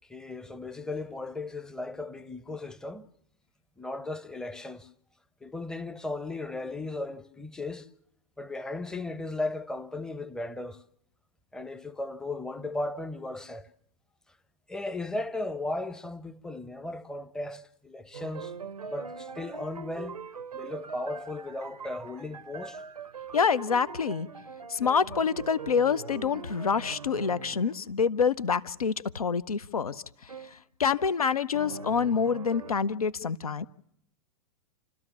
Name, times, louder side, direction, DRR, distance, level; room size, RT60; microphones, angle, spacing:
voice 1, 0.1-3.1 3.8-4.9 5.4-7.9 8.4-10.8 11.5-13.7 14.7-18.5 18.9-20.2 20.5-22.8, left 2 dB, 5° left, 0.7 m, -36 dB
sound 1, 18.1-27.8 30.3-30.6 31.5-32.7, right 5 dB, 80° right, 0.7 m, -42 dB
voice 2, 23.3-24.3 24.7-33.6, left 6 dB, 75° left, 0.7 m, -27 dB
29.5 x 13.0 x 7.1 m
figure-of-eight pair, 100°, 19 cm